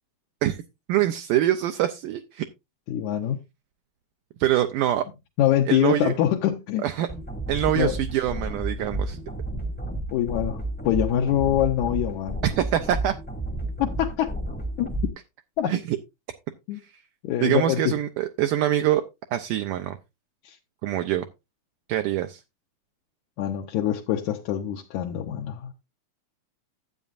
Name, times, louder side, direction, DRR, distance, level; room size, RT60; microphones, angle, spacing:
voice 1, 0.9-2.5 4.4-5.0 5.7-6.2 6.8-7.1 7.5-9.2 12.4-13.1 15.7-16.0 16.8-17.0 17.4-19.0 19.3-20.0 20.8-21.3 21.9-22.4, right 12 dB, 80° right, 1.9 m, -24 dB
voice 2, 2.9-3.4 5.4-6.8 7.8-7.9 9.5-9.6 10.1-12.4 13.8-14.3 14.8-14.9 15.6-15.7 16.7-16.8 17.2-17.9 20.4-20.6 23.4-25.7, left 11 dB, 75° left, 1.8 m, -24 dB
sound 1, 7.1-15.1, right 1 dB, 5° left, 0.7 m, -31 dB
12.5 x 8.3 x 2.5 m
omnidirectional pair, 4.3 m